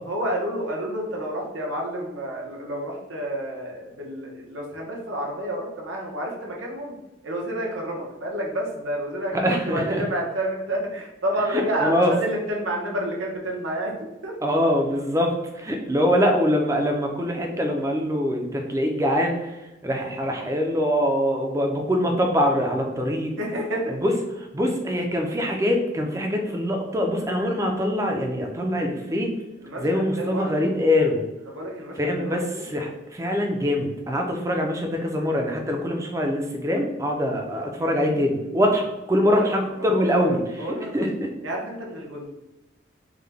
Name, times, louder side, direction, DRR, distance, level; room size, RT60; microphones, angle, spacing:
voice 1, 0.1-7.0 7.2-14.3 23.4-24.0 29.6-30.7 31.5-32.6 39.2-39.5 39.8-40.9 41.4-42.3, right 1 dB, 85° right, -1 dB, 0.9 m, -30 dB
voice 2, 9.3-10.0 11.5-12.1 14.4-23.3 24.0-24.1 24.5-29.3 29.8-31.2 32.0-40.4 40.9-41.3, equal, 15° right, 2 dB, 0.4 m, -23 dB
3.6 x 2.2 x 3.4 m, 1.0 s
head